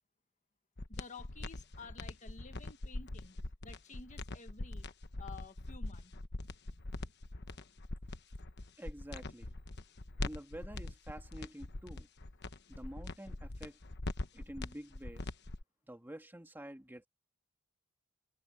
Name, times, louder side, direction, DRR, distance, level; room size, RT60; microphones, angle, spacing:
sound 1, 0.8-15.6, left 2 dB, 55° left, 1.1 m, -42 dB
voice 1, 0.9-3.3 3.6-4.8 5.2-6.1, left 4 dB, 35° left, 1.6 m, -52 dB
voice 2, 8.8-9.6 10.2-12.1 12.7-13.8 14.3-15.3 15.9-17.1, right 1 dB, 10° right, 1.8 m, -48 dB
head